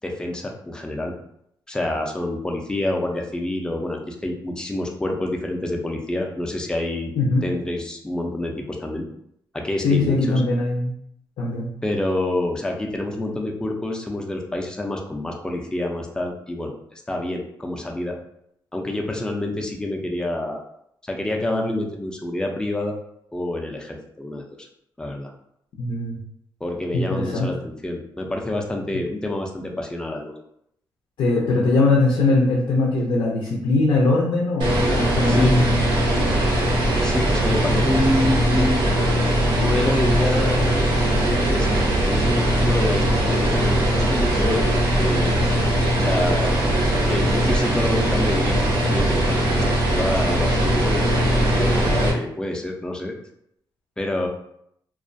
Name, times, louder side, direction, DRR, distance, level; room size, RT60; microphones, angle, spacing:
voice 1, 0.0-1.1 1.7-7.1 7.4-9.1 9.5-10.4 11.8-18.2 18.7-20.6 21.1-23.0 23.3-24.7 25.0-25.3 26.6-30.3 35.3-35.5 37.0-38.9 39.6-40.7 41.1-45.4 46.0-46.5 46.8-49.6 49.9-53.1 54.0-54.3, left 1 dB, 10° left, 1 dB, 0.4 m, -27 dB
voice 2, 9.8-10.9 11.4-11.7 25.8-26.2 26.9-27.5 31.2-35.8 36.1-36.3, left 2 dB, 90° left, -3 dB, 0.5 m, -21 dB
sound 1, 34.6-52.1, right 1 dB, 80° right, 0.7 m, -20 dB
2.3 x 2.1 x 2.5 m, 0.73 s
cardioid pair, 120°, 8 cm